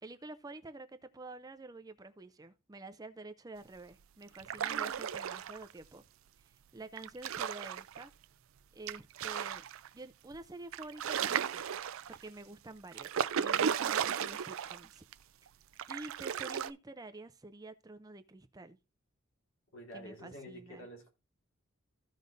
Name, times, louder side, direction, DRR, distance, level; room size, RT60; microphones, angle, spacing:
voice 1, 0.0-6.0 6.5-8.1 8.7-9.7 9.9-11.6 12.1-15.0 15.9-18.8 19.9-20.9, right 2 dB, 15° right, 0.4 m, -49 dB
voice 2, 4.3-4.8 19.7-21.1, equal, 75° left, 3.0 m, -49 dB
sound 1, 4.3-5.7 7.0-8.0 8.9-9.9 10.3-10.4 10.7-12.3 12.9-14.9 15.1-15.2 15.8-16.7, right 8 dB, 75° right, 0.4 m, -35 dB
15.0 x 5.2 x 2.6 m
head